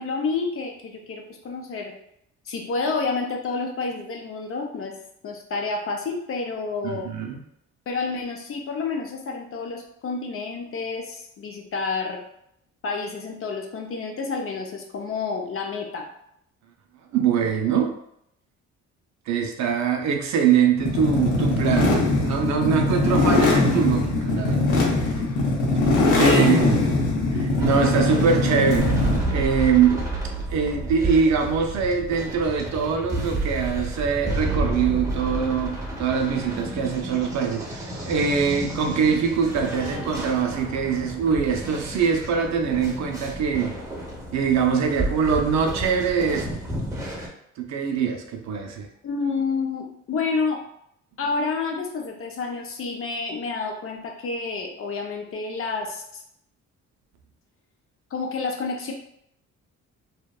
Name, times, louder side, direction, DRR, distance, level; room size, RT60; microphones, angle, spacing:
voice 1, 0.0-1.9 2.5-4.9 5.2-7.1 7.9-12.2 12.8-16.1 25.6-25.8 26.2-26.7 49.0-50.6 51.2-56.2 58.1-58.9, left 4 dB, 45° left, 2 dB, 0.5 m, -29 dB
voice 2, 6.8-7.4 17.1-17.9 19.3-25.2 26.2-27.0 27.3-30.0 30.5-43.8 44.3-46.5 47.6-48.9, right 6 dB, 65° right, 3 dB, 0.5 m, -23 dB
sound 1, 20.8-29.3, left 2 dB, 85° left, 0.7 m, -21 dB
sound 2, 27.6-47.3, right 1 dB, 10° right, 0.7 m, -31 dB
2.7 x 2.1 x 2.2 m, 0.74 s
cardioid pair, 90°, 30 cm